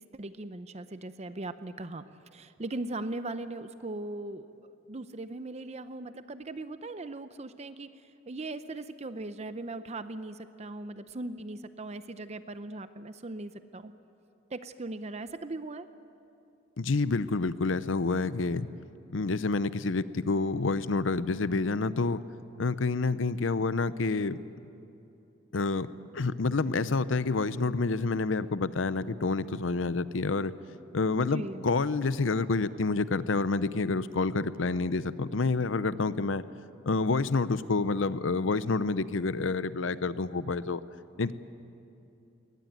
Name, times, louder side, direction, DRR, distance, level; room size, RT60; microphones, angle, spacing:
voice 1, 0.1-2.0 2.3-8.0 8.3-13.9 14.5-15.9 31.2-31.7, right 2 dB, 35° right, 12 dB, 0.6 m, -39 dB
voice 2, 16.8-18.7 19.1-22.2 22.6-24.4 25.5-25.9 26.1-30.5 30.9-36.4 36.9-40.8 41.2-41.3, left 3 dB, 75° left, 15 dB, 0.7 m, -28 dB
21.5 x 18.5 x 9.1 m, 2.8 s
head